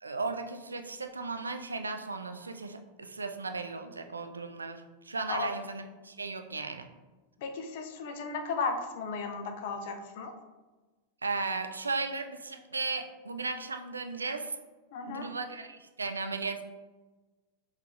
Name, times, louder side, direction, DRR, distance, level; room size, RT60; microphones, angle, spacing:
voice 1, 0.0-6.9 11.2-14.5 15.1-16.6, right 3 dB, 75° right, 7 dB, 0.3 m, -36 dB
voice 2, 7.4-10.3 14.9-15.3, left 4 dB, 50° left, 5 dB, 0.5 m, -35 dB
5.5 x 3.1 x 2.4 m, 1.2 s
figure-of-eight pair, 90°, 0 cm